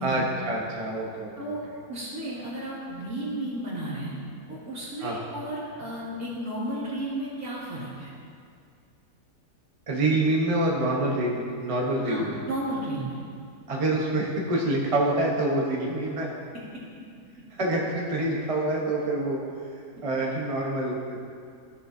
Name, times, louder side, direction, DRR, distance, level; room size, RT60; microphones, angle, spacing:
voice 1, 0.0-1.5 5.0-5.2 9.9-12.4 13.7-16.3 17.5-19.4 20.0-21.2, right 1 dB, 25° right, -3 dB, 0.9 m, -26 dB
voice 2, 1.9-4.2 4.5-8.1 12.0-13.2 16.5-16.8, right 1 dB, 65° right, -8 dB, 2.8 m, -33 dB
14.0 x 6.9 x 2.7 m, 2.3 s
omnidirectional pair, 1.7 m